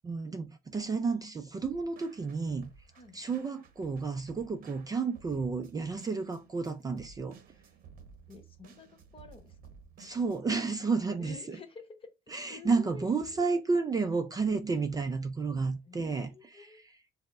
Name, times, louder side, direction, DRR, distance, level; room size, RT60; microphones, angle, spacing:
voice 1, 0.0-2.7 3.1-7.4 10.0-11.6 12.3-16.9, right 4 dB, 20° right, 0.4 m, -31 dB
sound 1, 1.6-10.4, right 6 dB, 55° right, 0.8 m, -56 dB
voice 2, 8.3-9.6 11.2-12.1 12.5-13.6 15.8-16.8, left 4 dB, 30° left, 0.9 m, -49 dB
4.2 x 2.1 x 3.5 m
cardioid pair, 110°, 17 cm